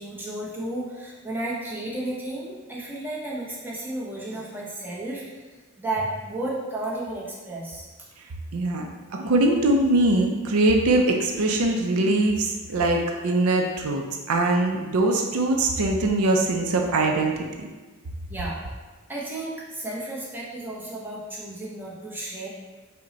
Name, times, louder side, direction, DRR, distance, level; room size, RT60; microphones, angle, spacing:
voice 1, 0.0-5.5 5.8-7.9 18.3-18.6 19.1-22.5, right 1 dB, 10° right, -6 dB, 0.8 m, -33 dB
voice 2, 8.5-17.7, right 2 dB, 80° right, 3 dB, 0.5 m, -22 dB
5.3 x 2.2 x 3.9 m, 1.3 s
head